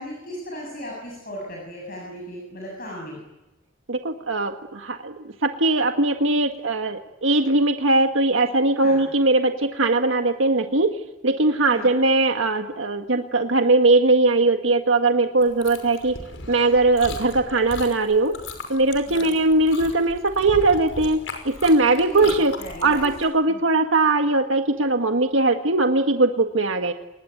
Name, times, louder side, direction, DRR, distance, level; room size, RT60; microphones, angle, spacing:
voice 1, 0.0-3.2 8.8-9.1 11.6-12.0 19.1-19.4 21.8-23.1 23.5-23.6, equal, 45° left, -1 dB, 7.5 m, -37 dB
voice 2, 3.9-5.1 5.4-10.9 11.2-16.1 16.5-18.3 18.7-21.2 21.4-22.5 22.8-26.9, right 2 dB, 85° right, 6 dB, 1.6 m, -20 dB
Chewing mastication, 15.4-23.2, left 2 dB, 80° left, 5.6 m, -38 dB
27.5 x 20.5 x 9.2 m, 1.0 s
head